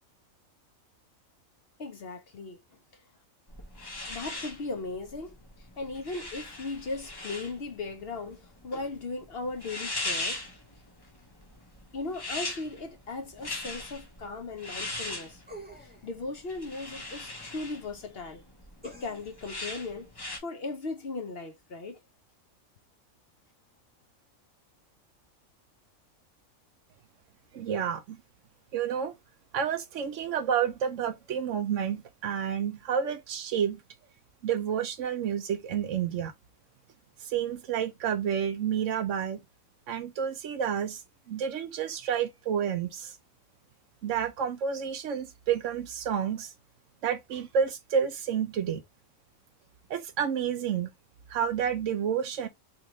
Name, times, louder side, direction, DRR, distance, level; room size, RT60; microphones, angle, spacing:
voice 1, 1.8-2.6 4.1-10.4 11.9-15.4 15.8-18.4 18.8-20.1 20.4-22.0, left 3 dB, 55° left, 0.8 m, -37 dB
sound 1, 3.5-20.4, left 2 dB, 20° left, 0.8 m, -40 dB
sound 2, 15.5-16.1 18.8-19.4 20.3-20.4, right 1 dB, 10° right, 1.1 m, -47 dB
voice 2, 27.5-28.2 28.7-29.2 29.5-33.8 34.4-36.3 37.2-39.4 39.9-43.2 44.0-46.5 47.0-48.8 49.9-50.9 51.3-52.5, right 8 dB, 70° right, 0.9 m, -30 dB
3.7 x 2.9 x 3.0 m
omnidirectional pair, 1.4 m